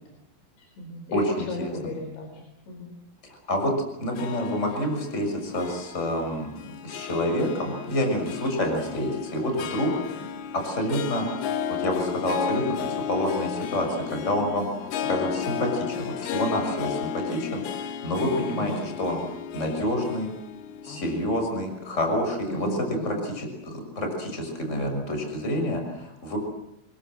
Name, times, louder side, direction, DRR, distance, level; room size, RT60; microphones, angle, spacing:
voice 1, 0.6-2.9 18.5-18.8 20.9-21.0 22.5-23.2, equal, 65° left, 3 dB, 6.4 m, -35 dB
voice 2, 1.1-1.7 3.5-3.7 4.0-6.5 6.8-9.9 10.6-11.3 11.8-14.7 15.1-19.2 19.5-20.3 20.8-22.7 23.0-26.4, left 1 dB, 15° left, 4 dB, 6.0 m, -28 dB
Harp, 4.1-22.6, left 8 dB, 85° left, 4.1 m, -34 dB
27.0 x 23.0 x 7.8 m, 0.83 s
omnidirectional pair, 5.8 m